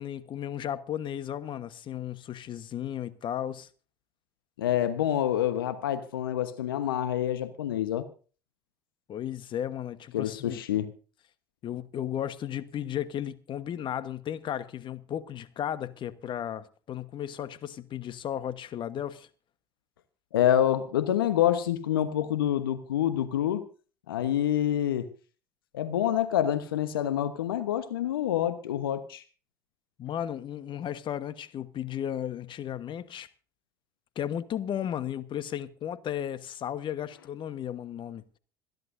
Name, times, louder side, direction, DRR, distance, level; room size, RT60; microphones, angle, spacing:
voice 1, 0.0-3.7 9.1-10.6 11.6-19.3 30.0-33.3 34.1-38.2, left 10 dB, 45° left, 1.2 m, -34 dB
voice 2, 4.6-8.1 10.1-10.9 20.3-23.7 24.1-25.1 25.7-29.2, left 11 dB, 80° left, 1.1 m, -27 dB
26.5 x 11.0 x 2.7 m
hypercardioid pair, 70°, 12 cm